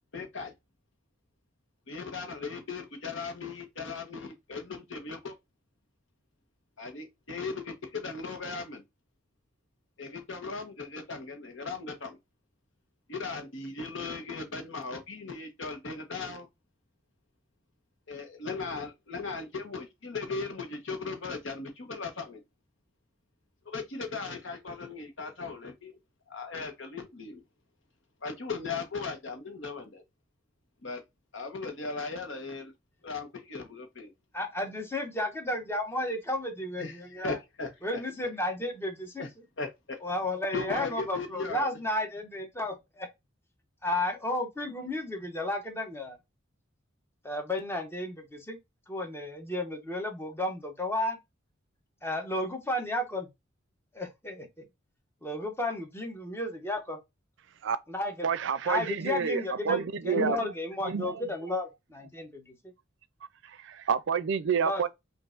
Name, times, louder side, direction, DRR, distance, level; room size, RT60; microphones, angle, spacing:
voice 1, 0.1-0.5 1.9-5.3 6.8-8.8 10.0-12.2 13.1-16.5 18.1-22.4 23.7-26.0 26.3-27.4 28.2-30.0 30.8-31.0 31.3-32.7 33.0-34.1 36.8-37.7 39.2-39.3 39.6-40.0 40.5-41.7, left 4 dB, 70° left, 1.1 m, -37 dB
voice 2, 34.3-37.4 37.8-39.2 40.0-43.1 43.8-46.2 47.2-48.6 48.9-51.2 52.0-53.3 53.9-54.6 55.2-57.0 57.9-58.3 58.6-62.5 64.6-64.9, left 1 dB, 10° left, 0.9 m, -33 dB
voice 3, 58.2-60.5 60.8-61.2 63.5-64.9, right 6 dB, 65° right, 0.5 m, -29 dB
5.3 x 2.6 x 2.5 m
head